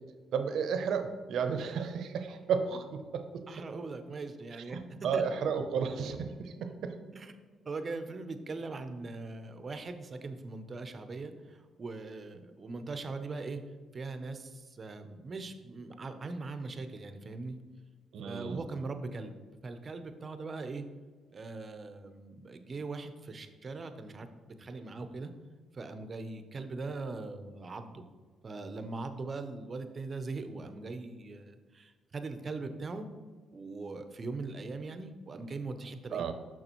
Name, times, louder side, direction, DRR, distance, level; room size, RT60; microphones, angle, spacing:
voice 1, 0.3-3.4 4.7-6.9 18.1-18.6 36.1-36.3, right 6 dB, 75° right, 8 dB, 0.7 m, -33 dB
voice 2, 3.5-4.8 5.1-5.2 7.1-7.3 7.7-13.6 13.9-17.6 18.2-19.4 19.6-20.8 21.3-25.3 25.7-28.0 28.4-33.1 33.5-36.3, right 3 dB, 40° right, 8 dB, 0.6 m, -40 dB
6.7 x 6.1 x 3.0 m, 1.5 s
cardioid pair, 90°, 0 cm